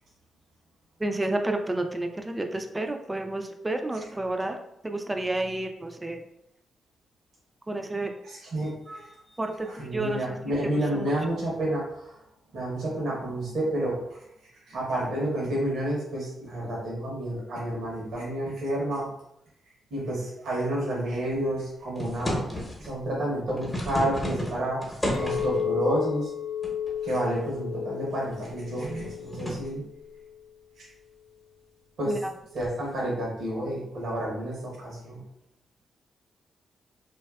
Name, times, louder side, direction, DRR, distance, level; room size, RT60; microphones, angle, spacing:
voice 1, 1.0-4.6 4.8-6.2 7.7-8.1 9.4-11.1 32.1-32.3, right 2 dB, 20° right, 5 dB, 0.3 m, -30 dB
voice 2, 8.2-9.2 9.6-12.2 12.5-14.2 14.7-19.1 19.9-22.5 22.8-26.3 27.0-29.8 30.8-30.9 32.0-32.1 32.5-35.2, right 1 dB, 70° right, -5 dB, 0.8 m, -30 dB
sound 1, 22.0-22.9 23.4-25.7 26.6-27.1 27.5-27.6 28.2-29.7 32.6-32.8, equal, 25° left, 0.8 m, -33 dB
Chink clink, 25.1-30.4, left 9 dB, 80° left, 0.4 m, -33 dB
2.5 x 2.2 x 2.3 m, 0.80 s
cardioid pair, 60°, 0 cm